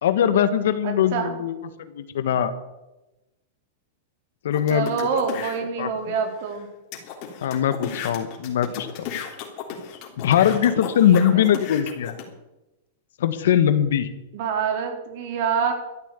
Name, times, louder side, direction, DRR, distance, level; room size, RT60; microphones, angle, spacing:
voice 1, 0.0-2.5 4.4-5.4 5.8-6.1 7.4-9.1 10.2-12.2 13.2-14.1, left 9 dB, 80° left, 11 dB, 1.5 m, -21 dB
voice 2, 0.8-1.4 4.7-6.7 11.0-11.4 14.3-15.7, right 6 dB, 60° right, 5 dB, 3.4 m, -26 dB
sound 1, 4.5-5.6 6.2-6.3 6.5-6.6 6.9-12.2, left 8 dB, 45° left, 3.3 m, -35 dB
13.5 x 8.6 x 8.4 m, 0.99 s
hypercardioid pair, 135°, 0 cm